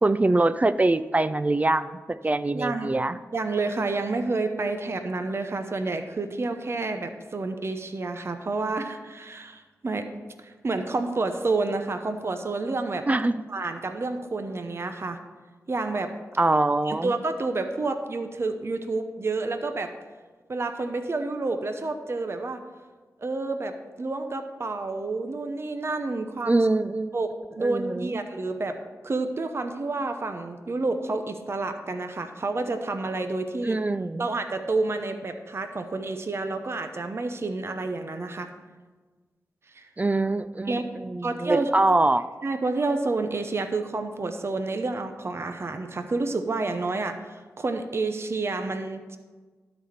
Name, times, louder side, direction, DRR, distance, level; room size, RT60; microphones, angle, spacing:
voice 1, 0.0-3.2 13.1-13.4 16.4-17.1 26.5-27.1 27.6-28.1 33.6-34.3 40.0-42.3, right 2 dB, 25° right, 13 dB, 0.4 m, -24 dB
voice 2, 2.5-2.9 3.3-10.1 10.4-13.1 13.5-15.2 15.7-16.1 16.9-19.9 20.5-22.6 23.2-26.6 27.1-27.3 27.6-28.8 29.0-33.8 34.2-38.5 39.7-39.9 40.7-40.8 41.2-41.7 42.4-49.2, right 3 dB, 45° right, 7 dB, 0.8 m, -29 dB
12.5 x 4.1 x 6.7 m, 1.4 s
cardioid pair, 50°, 6 cm